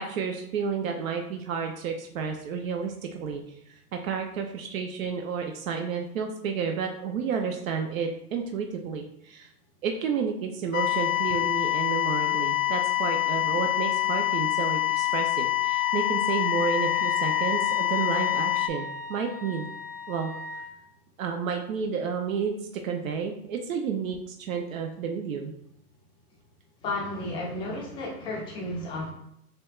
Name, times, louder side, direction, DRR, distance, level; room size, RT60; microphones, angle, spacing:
voice 1, 0.0-3.4 3.9-9.5 9.8-19.7 20.1-20.3 21.2-22.5 22.8-25.5, right 6 dB, 65° right, 4 dB, 0.7 m, -31 dB
sound 1, 10.7-18.7, left 16 dB, 65° left, 0.5 m, -26 dB
Wind instrument woodwind instrument, 15.8-20.7, left 2 dB, 90° right, 1.5 m, -37 dB
voice 2, 26.8-29.1, left 2 dB, 10° left, -2 dB, 0.4 m, -33 dB
6.6 x 2.2 x 2.3 m, 0.75 s
hypercardioid pair, 135°, 45 cm